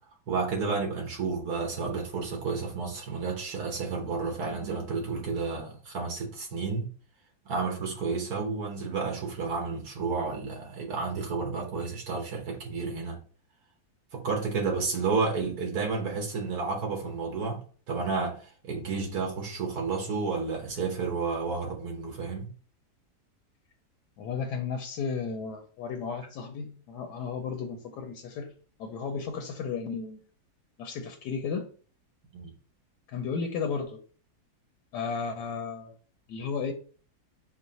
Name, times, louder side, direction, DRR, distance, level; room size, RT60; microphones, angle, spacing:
voice 1, 0.3-6.9 7.4-13.2 14.1-17.6 17.9-22.5 32.3-32.5, right 4 dB, 65° right, 1.5 m, -31 dB
voice 2, 24.2-28.5 28.8-30.2 30.8-31.7 33.1-34.0 34.9-35.9 36.3-36.7, left 5 dB, 80° left, 1.2 m, -34 dB
4.6 x 2.1 x 4.0 m
omnidirectional pair, 1.8 m